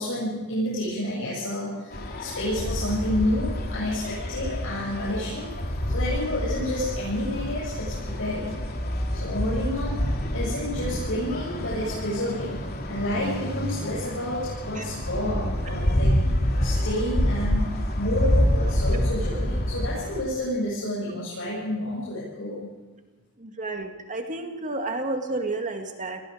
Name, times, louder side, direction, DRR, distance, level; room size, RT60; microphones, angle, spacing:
voice 1, 0.0-5.5 5.9-8.5 9.1-16.1 16.6-22.7, left 1 dB, 70° left, -7 dB, 7.7 m, -30 dB
sound 1, 1.9-20.2, equal, 45° left, 2.9 m, -27 dB
voice 2, 23.4-26.2, right 2 dB, 40° right, 4 dB, 2.3 m, -31 dB
27.0 x 19.5 x 5.2 m, 1.2 s
head